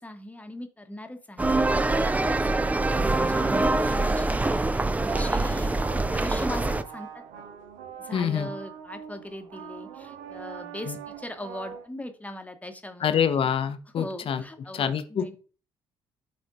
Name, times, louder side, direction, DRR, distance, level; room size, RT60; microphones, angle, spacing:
voice 1, 0.0-2.7 2.9-5.7 6.1-7.4 8.0-13.5 14.0-15.4, left 1 dB, 10° left, 7 dB, 1.0 m, -40 dB
sound 1, 1.4-6.8, right 2 dB, 10° right, 0.4 m, -24 dB
sound 2, 4.8-11.9, right 8 dB, 70° right, 0.7 m, -43 dB
voice 2, 8.1-8.5 13.0-14.4 14.7-15.4, left 8 dB, 45° left, 11 dB, 0.8 m, -26 dB
11.5 x 4.2 x 2.6 m, 0.37 s
figure-of-eight pair, 50°, 13 cm